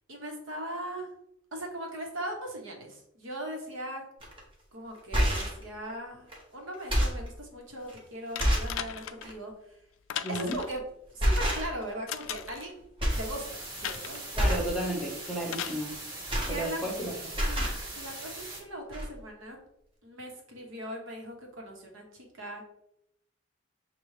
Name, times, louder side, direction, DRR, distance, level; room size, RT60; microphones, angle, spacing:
voice 1, 0.1-1.1 1.5-4.0 4.7-6.3 6.5-9.8 10.3-10.8 11.1-12.8 13.1-14.2 16.3-16.8 17.5-19.6 20.0-22.6, right 1 dB, 70° right, 1 dB, 1.0 m, -39 dB
sound 1, 4.2-4.4 4.9-5.6 6.3-6.4 6.7-7.3 7.9-8.0 8.4-8.8 9.2-9.4 10.5-10.8 11.2-11.9 12.2-12.7 13.0-13.3 13.6-13.9 14.3-14.7 15.9-17.0 17.3-17.8 18.6-18.7 18.9-19.1, equal, 25° right, 1.0 m, -28 dB
sound 2, 8.4-9.3 10.1-10.8 12.1-12.7 13.8-14.2 15.5-15.8 16.9-17.0, left 10 dB, 75° left, 0.3 m, -37 dB
voice 2, 10.2-10.5 14.4-15.9 16.5-17.3, right 1 dB, ahead, -2 dB, 0.8 m, -33 dB
sound 3, 13.1-18.6, right 2 dB, 45° right, 1.5 m, -41 dB
6.6 x 2.3 x 3.2 m, 0.78 s
head